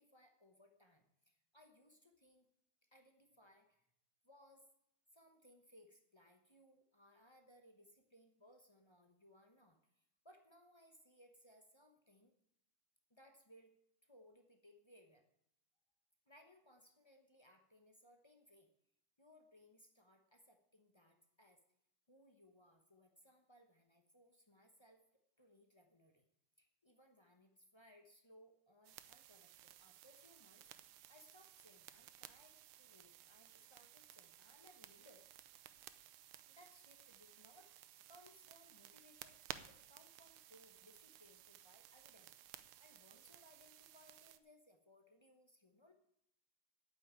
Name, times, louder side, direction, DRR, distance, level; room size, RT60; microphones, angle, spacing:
voice 1, 0.0-2.5 2.9-3.9 4.2-4.7 5.1-12.3 13.1-13.7 14.0-15.3 16.3-18.7 19.2-21.6 22.1-25.0 25.4-26.2 26.6-35.3 36.5-37.8 38.1-39.4 39.7-45.9, equal, 25° left, 5 dB, 0.6 m, -66 dB
sound 1, 28.8-44.4, right 12 dB, 85° right, 1.6 m, -57 dB
8.9 x 7.9 x 8.9 m, 0.75 s
omnidirectional pair, 2.3 m